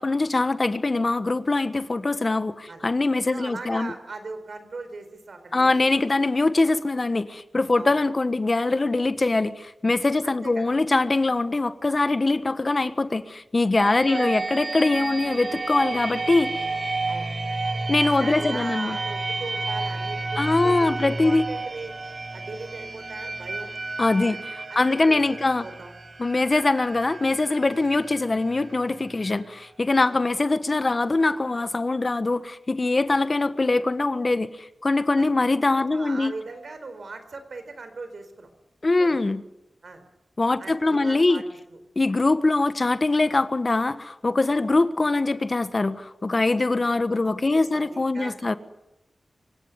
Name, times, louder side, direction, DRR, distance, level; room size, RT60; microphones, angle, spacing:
voice 1, 0.0-3.9 5.5-16.5 17.9-19.0 20.4-21.4 24.0-24.4 24.7-25.7 26.2-36.3 38.8-39.4 40.4-41.4 41.9-48.6, left 2 dB, 45° left, 12 dB, 1.4 m, -23 dB
voice 2, 3.3-5.8 7.8-7.9 10.2-10.8 13.9-14.5 17.1-17.3 18.2-21.9 22.3-23.7 24.2-24.4 24.7-25.9 30.0-30.2 35.2-35.3 35.9-38.5 39.0-39.2 39.8-40.0 40.6-41.4 41.7-41.8 44.5-44.7 47.5-48.5, right 3 dB, 70° right, 9 dB, 4.4 m, -39 dB
sound 1, 13.7-29.4, right 3 dB, 50° right, 2.0 m, -32 dB
25.5 x 17.0 x 9.6 m, 0.91 s
cardioid pair, 55°, 0 cm